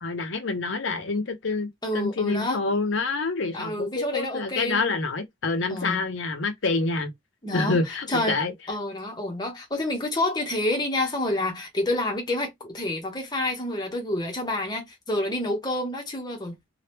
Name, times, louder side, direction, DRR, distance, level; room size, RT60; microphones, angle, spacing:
voice 1, 0.0-7.1 7.5-8.5, left 3 dB, 80° left, 0.7 m, -27 dB
voice 2, 1.8-2.6 3.5-4.9 5.7-6.0 7.4-7.8 8.1-8.4 8.7-16.6, left 1 dB, 20° left, 0.9 m, -28 dB
2.8 x 2.3 x 3.3 m
head